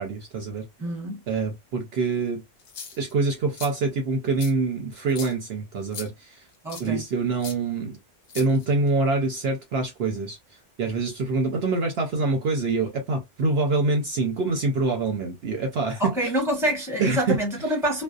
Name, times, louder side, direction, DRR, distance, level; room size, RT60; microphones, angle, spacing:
voice 1, 0.0-0.7 1.3-2.4 2.9-6.4 6.8-8.0 8.3-10.4 10.8-16.3 17.0-17.7, right 3 dB, 60° right, 0.7 m, -25 dB
voice 2, 0.8-1.2 6.6-7.0 16.0-18.0, right 1 dB, ahead, 0.8 m, -26 dB
sound 1, 2.6-3.1 3.5-3.7 4.4-4.5 5.1-5.3 5.9-6.1 6.7-6.9 7.4-7.6 8.3-8.9, left 6 dB, 65° left, 1.0 m, -38 dB
2.6 x 2.1 x 2.3 m
omnidirectional pair, 1.3 m